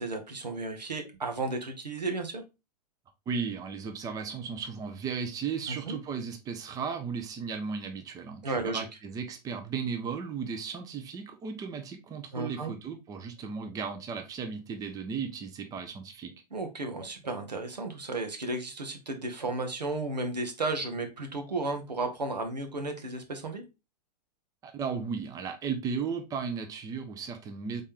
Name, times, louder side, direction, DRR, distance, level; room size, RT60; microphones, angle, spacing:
voice 1, 0.0-2.4 5.7-6.0 8.4-8.9 12.3-12.7 16.5-23.6, right 2 dB, 80° right, 1.1 m, -33 dB
voice 2, 3.3-16.3 24.6-27.8, right 6 dB, 15° right, 0.7 m, -35 dB
4.1 x 3.7 x 3.5 m
figure-of-eight pair, 100°, 21 cm